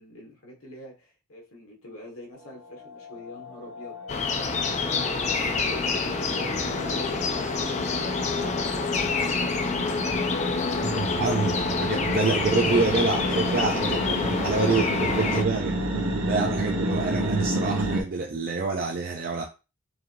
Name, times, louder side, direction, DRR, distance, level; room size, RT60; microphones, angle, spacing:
voice 1, 0.0-8.3 9.2-11.0, left 2 dB, 85° left, 1.6 m, -44 dB
sound 1, 2.3-13.1 13.4-13.5 13.9-14.0 14.5-14.9 15.4-15.5 15.7-16.2 16.5-16.6, left 1 dB, 20° right, 0.8 m, -42 dB
sound 2, 4.1-15.4, left 4 dB, 30° left, 0.4 m, -27 dB
sound 3, 4.7-4.9 5.2-18.0, right 1 dB, 75° right, 1.0 m, -31 dB
voice 2, 10.8-14.2 14.4-15.8 16.3-19.4, right 4 dB, 45° right, 0.4 m, -27 dB
4.6 x 3.0 x 2.6 m
head